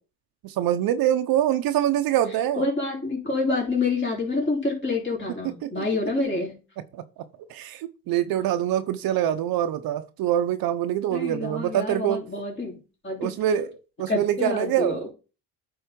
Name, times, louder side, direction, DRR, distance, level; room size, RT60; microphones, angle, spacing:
voice 1, 0.4-2.7 5.4-5.8 6.9-7.0 7.5-12.2 13.2-15.1, right 11 dB, 65° right, 0.8 m, -25 dB
voice 2, 2.6-6.6 11.1-12.8 13.0-13.3 14.1-15.0, left 3 dB, 30° left, 3.5 m, -27 dB
9.1 x 3.9 x 5.2 m
supercardioid pair, 90°, 39 cm